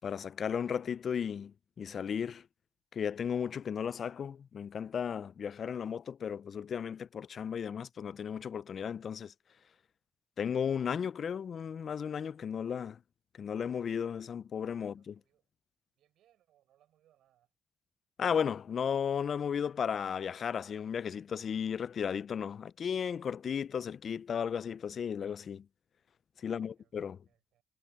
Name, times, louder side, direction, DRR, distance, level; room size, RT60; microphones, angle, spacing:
voice 1, 0.0-2.4 2.9-9.3 10.4-13.0 13.4-15.2 18.2-25.6 26.4-27.2, left 7 dB, 50° left, 0.4 m, -35 dB
voice 2, 14.8-15.5 16.0-17.5 26.4-27.6, right 12 dB, 80° right, 7.1 m, -70 dB
cardioid pair, 90°, 0 cm